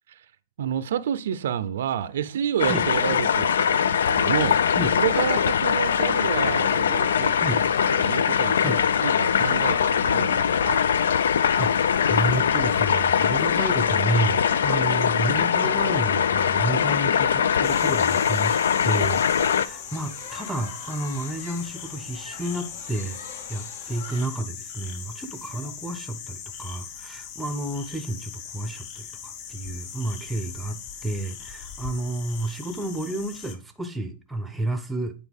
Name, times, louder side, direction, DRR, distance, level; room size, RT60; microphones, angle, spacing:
voice 1, 0.6-7.3 7.9-10.8, right 9 dB, 70° right, 0.5 m, -29 dB
sound 1, 2.6-19.7, left 7 dB, 90° left, 0.4 m, -22 dB
sound 2, 5.1-24.3, left 6 dB, 65° left, 1.1 m, -43 dB
voice 2, 12.1-23.2 23.5-35.1, right 1 dB, 5° right, 0.6 m, -30 dB
sound 3, 17.6-33.6, left 7 dB, 35° left, 0.8 m, -40 dB
8.4 x 4.3 x 3.5 m
hypercardioid pair, 160°, 0 cm